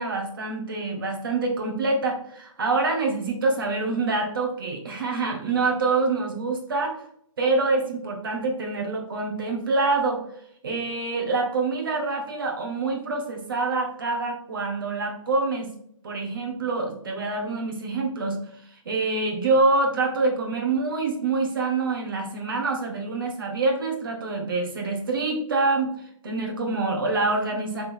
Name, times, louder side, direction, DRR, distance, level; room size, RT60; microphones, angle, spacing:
voice 1, 0.0-7.0 7.4-10.2 10.6-15.7 16.0-18.4 18.8-25.9 26.2-27.8, right 3 dB, 40° right, 2 dB, 1.5 m, -26 dB
6.4 x 3.9 x 4.6 m, 0.68 s
hypercardioid pair, 175°, 17 cm